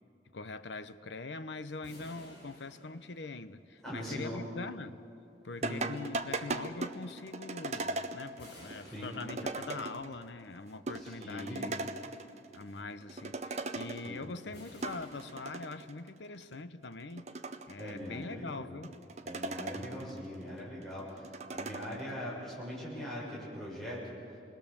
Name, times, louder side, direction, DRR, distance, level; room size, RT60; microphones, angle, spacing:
voice 1, 0.3-5.0 5.4-11.8 12.5-17.3 17.7-19.0, left 3 dB, 80° left, 12 dB, 0.9 m, -43 dB
sound 1, 1.8-3.7 8.4-10.0 14.5-16.2, left 1 dB, 65° left, 6.5 m, -55 dB
voice 2, 3.8-4.4 5.6-5.9 8.9-9.1 11.0-11.6 14.0-14.2 17.8-18.7 19.2-24.0, equal, ahead, -7 dB, 6.6 m, -41 dB
sound 2, 5.6-10.2 10.6-10.7 10.9-12.6 12.9-14.2 14.6-15.9 16.4-16.5 17.0-18.2 18.8-20.2 20.6-22.0, right 3 dB, 40° right, 0.8 m, -38 dB
28.0 x 21.0 x 7.1 m, 2.8 s
head